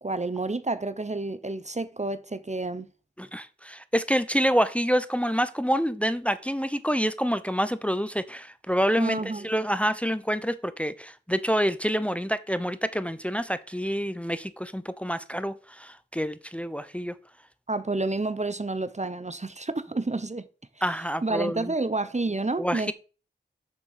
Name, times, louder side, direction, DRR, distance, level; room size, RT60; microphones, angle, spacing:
voice 1, 0.0-2.9 9.0-9.5 17.7-20.5 21.2-22.9, right 2 dB, 35° right, 0.7 m, -29 dB
voice 2, 3.2-17.1 20.8-21.7 22.6-22.9, equal, 5° left, 0.7 m, -27 dB
7.3 x 6.7 x 6.7 m
wide cardioid pair, 50°, 19 cm